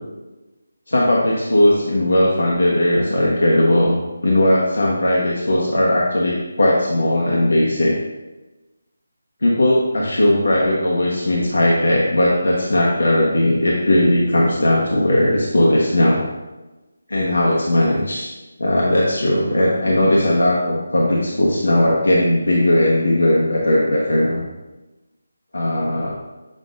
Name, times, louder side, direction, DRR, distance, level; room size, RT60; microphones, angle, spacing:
voice 1, 0.9-7.9 9.4-16.3 17.1-18.3 18.6-24.4 25.5-26.1, left 1 dB, 80° left, -4 dB, 1.1 m, -17 dB
7.5 x 5.0 x 2.6 m, 1.1 s
figure-of-eight pair, 160°, 0 cm